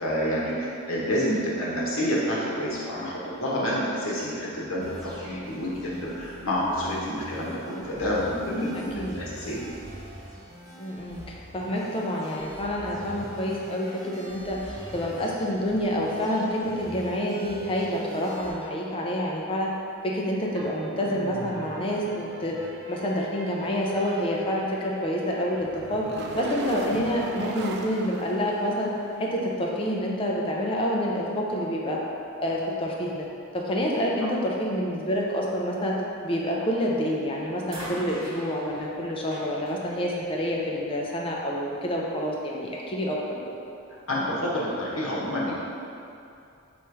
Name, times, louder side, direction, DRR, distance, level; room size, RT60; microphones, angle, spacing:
voice 1, 0.0-9.6 44.1-45.6, equal, 75° left, -6 dB, 1.0 m, -28 dB
sound 1, 4.8-18.5, right 1 dB, 20° right, 0.7 m, -43 dB
voice 2, 8.7-9.1 10.8-19.7 20.0-22.6 22.9-26.0 26.3-32.0 32.4-33.3 33.5-36.0 36.2-43.5, equal, 25° left, -3 dB, 0.5 m, -28 dB
sound 2, 20.5-29.2, right 3 dB, 55° right, 0.3 m, -40 dB
sound 3, 36.7-37.1 37.7-40.9 42.0-42.1, equal, 90° right, 1.2 m, -43 dB
3.1 x 3.0 x 4.6 m, 2.6 s
head